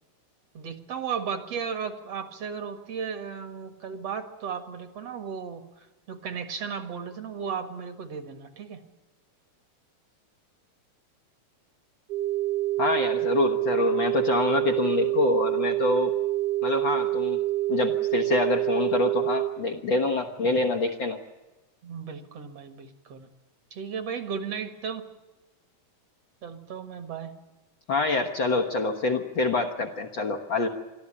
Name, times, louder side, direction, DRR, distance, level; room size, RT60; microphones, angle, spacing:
voice 1, 0.5-8.8 21.8-23.3 23.7-25.1 26.4-27.3, right 6 dB, 55° right, 8 dB, 2.5 m, -35 dB
sound 1, 12.1-19.5, right 16 dB, 40° right, 1.7 m, -26 dB
voice 2, 12.8-16.1 16.6-17.4 17.7-21.2 27.9-30.7, left 3 dB, 50° left, 3 dB, 1.6 m, -26 dB
23.5 x 13.5 x 9.9 m, 1.1 s
omnidirectional pair, 3.4 m